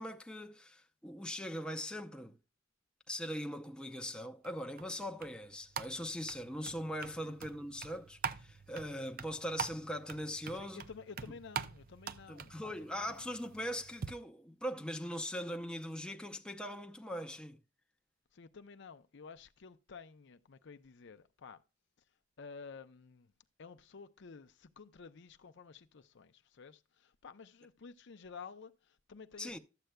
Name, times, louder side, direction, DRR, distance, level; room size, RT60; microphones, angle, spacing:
voice 1, 0.0-2.4 3.1-10.8 12.3-17.6 29.4-29.6, equal, 5° left, 0.7 m, -41 dB
sound 1, 4.4-14.1, right 7 dB, 45° right, 0.5 m, -45 dB
voice 2, 10.5-12.6 12.9-13.3 18.3-21.6 22.4-23.3 23.6-29.6, left 5 dB, 65° left, 0.6 m, -52 dB
12.5 x 7.7 x 2.2 m
head